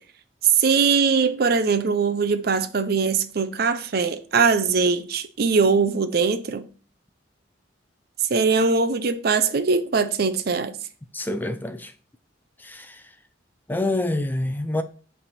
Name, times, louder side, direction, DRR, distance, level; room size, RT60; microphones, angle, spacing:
voice 1, 0.6-6.7 8.3-10.8, right 5 dB, 55° right, 0.6 m, -21 dB
voice 2, 11.1-11.9 12.6-13.1 13.7-14.8, left 1 dB, 10° left, 0.4 m, -27 dB
8.6 x 3.5 x 4.2 m
head